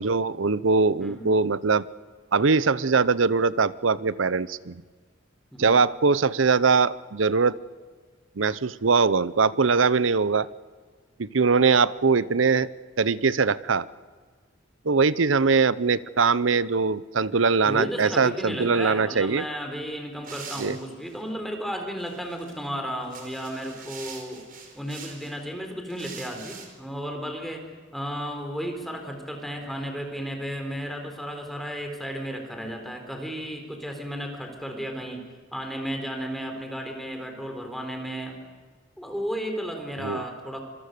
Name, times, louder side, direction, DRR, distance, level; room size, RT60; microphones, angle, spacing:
voice 1, 0.0-1.9 2.3-4.8 5.6-7.5 8.4-10.5 11.2-12.7 13.0-13.9 14.8-19.4 20.6-20.8 40.0-40.2, right 4 dB, 85° right, 18 dB, 0.8 m, -22 dB
voice 2, 1.0-1.3 5.5-5.8 17.7-24.4 24.7-27.6 27.9-35.2 35.5-38.4 39.0-40.6, equal, ahead, 4 dB, 4.0 m, -33 dB
sound 1, 20.2-21.2 22.0-22.5 23.0-25.4 25.9-26.7, right 6 dB, 45° right, 4.6 m, -43 dB
26.0 x 23.0 x 6.8 m, 1.5 s
head